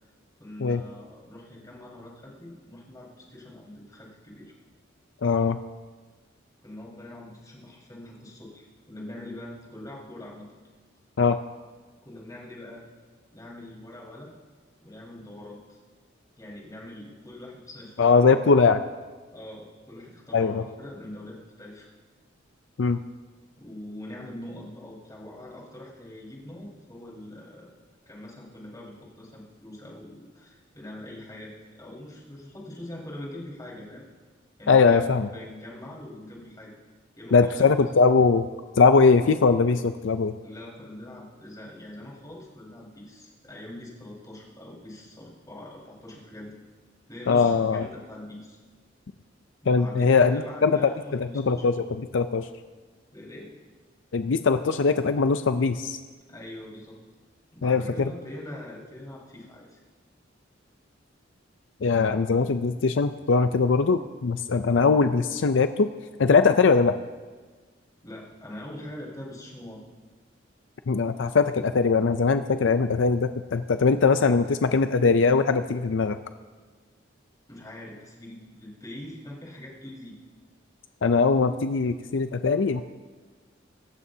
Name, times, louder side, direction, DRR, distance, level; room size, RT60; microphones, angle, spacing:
voice 1, 0.4-4.5 6.6-10.5 12.0-12.8 13.3-14.4 14.8-15.8 16.4-18.5 19.3-21.9 23.6-27.7 28.1-34.0 34.6-36.7 37.2-37.9 40.4-46.6 47.1-48.6 49.6-51.6 53.1-53.6 56.3-57.0 57.5-59.8 68.0-69.8 77.5-80.2, left 1 dB, 20° left, -5 dB, 4.6 m, -43 dB
voice 2, 5.2-5.6 11.2-11.4 18.0-18.8 20.3-20.6 22.8-23.0 34.7-35.3 37.3-38.5 38.8-40.3 47.3-47.9 49.7-52.5 54.1-56.0 57.6-58.1 61.8-65.9 66.2-67.0 70.9-76.2 81.0-82.8, left 4 dB, 75° left, 10 dB, 0.5 m, -21 dB
25.5 x 14.0 x 2.8 m, 1.4 s
head